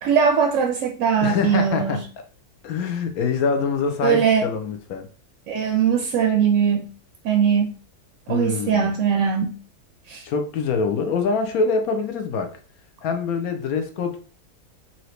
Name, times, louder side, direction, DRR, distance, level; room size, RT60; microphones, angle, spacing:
voice 1, 0.0-2.0 4.0-4.5 5.5-6.9 7.2-7.8 8.3-9.6 10.1-10.3, right 7 dB, 70° right, 0.8 m, -20 dB
voice 2, 1.2-2.0 2.6-5.1 8.3-8.9 10.2-12.5 13.0-14.2, left 5 dB, 70° left, 1.1 m, -24 dB
3.9 x 2.8 x 3.1 m
omnidirectional pair, 1.7 m